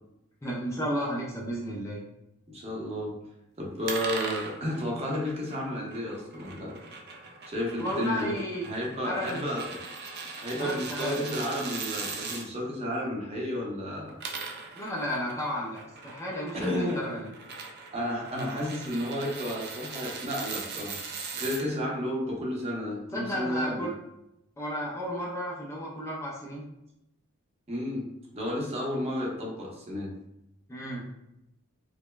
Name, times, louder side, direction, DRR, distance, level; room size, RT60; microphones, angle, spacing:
voice 1, 0.4-2.0 7.8-8.6 9.0-9.4 10.6-11.3 14.7-17.3 23.1-23.9 24.6-26.7 30.7-31.1, equal, 15° left, -4 dB, 0.4 m, -33 dB
voice 2, 2.5-3.2 3.6-6.8 7.5-8.3 8.6-9.8 10.3-14.1 14.7-14.8 16.5-17.1 17.9-21.0 21.3-23.9 27.7-28.0 28.3-30.1, equal, 30° right, -2 dB, 0.8 m, -32 dB
sound 1, 3.9-12.5 14.0-21.6, right 4 dB, 50° right, 0.5 m, -40 dB
5.0 x 2.1 x 2.2 m, 0.86 s
head